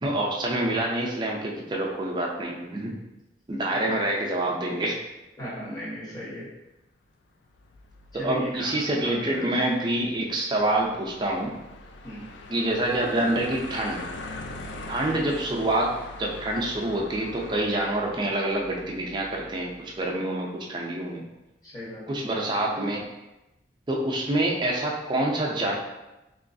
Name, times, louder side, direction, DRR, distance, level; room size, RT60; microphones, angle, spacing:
voice 1, 0.0-2.9 3.5-5.0 8.1-11.5 12.5-14.0 14.9-21.2 22.1-23.1 23.9-25.8, right 1 dB, 25° right, -1 dB, 0.4 m, -27 dB
voice 2, 5.4-6.5 8.1-8.7 9.0-9.1 9.5-9.6 12.0-12.2 15.1-15.2 21.6-22.2, left 1 dB, 20° left, -7 dB, 1.0 m, -36 dB
sound 1, 7.6-19.7, left 2 dB, 80° left, 0.3 m, -42 dB
3.0 x 3.0 x 2.6 m, 0.99 s
head